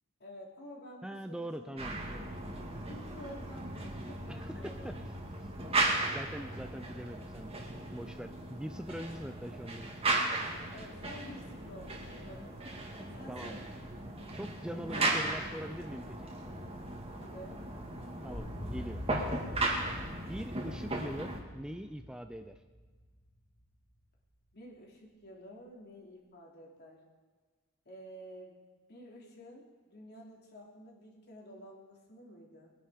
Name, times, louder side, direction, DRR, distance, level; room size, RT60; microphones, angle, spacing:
voice 1, 0.2-2.3 2.8-4.9 10.7-12.6 13.1-13.6 14.6-15.4 17.1-17.6 24.5-27.0 27.8-28.6 28.9-32.7, equal, 50° left, -2 dB, 3.3 m, -50 dB
voice 2, 1.0-2.0 4.3-4.9 6.0-7.5 7.9-9.9 13.3-13.6 14.3-16.3 18.2-19.0 20.1-22.6, equal, 5° right, 8 dB, 0.4 m, -42 dB
sound 1, 1.8-21.4, right 2 dB, 30° right, 2.0 m, -36 dB
sound 2, 18.3-23.7, equal, 85° left, 4.5 m, -44 dB
22.0 x 10.0 x 5.1 m, 1.4 s
head